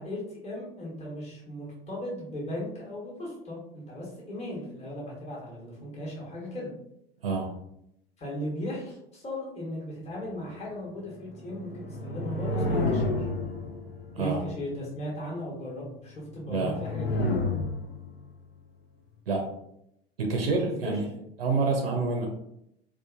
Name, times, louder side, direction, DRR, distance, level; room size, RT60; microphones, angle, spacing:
voice 1, 0.0-6.7 8.2-13.3 14.2-17.1 20.8-21.0 21.7-21.8, left 1 dB, 20° left, -4 dB, 1.0 m, -37 dB
piano dopplers, 11.3-14.3 16.4-18.3, left 2 dB, 75° left, 0.5 m, -30 dB
voice 2, 14.1-14.4 16.5-16.7 19.3-19.5 20.2-21.0 21.4-22.3, right 3 dB, 75° right, 2 dB, 0.5 m, -27 dB
2.7 x 2.4 x 2.3 m, 0.77 s
figure-of-eight pair, 75°, 30 cm